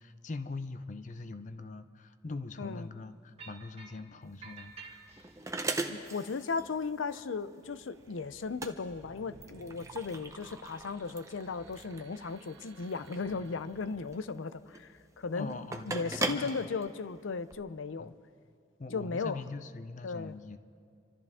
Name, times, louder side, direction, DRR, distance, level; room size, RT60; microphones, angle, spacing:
voice 1, 0.0-5.0 15.3-16.7 18.0-18.1 18.8-20.6, left 3 dB, 40° left, 11 dB, 0.5 m, -42 dB
voice 2, 2.6-2.9 5.9-18.1 18.9-19.4 20.0-20.4, left 4 dB, 90° left, 14 dB, 0.5 m, -36 dB
sound 1, 3.4-4.0 4.4-5.5, right 4 dB, 30° right, 1.6 m, -50 dB
sound 2, 4.2-17.5, right 2 dB, 15° right, 0.7 m, -40 dB
sound 3, 7.6-14.3, right 3 dB, 75° right, 0.7 m, -56 dB
27.0 x 13.5 x 3.6 m, 2.3 s
head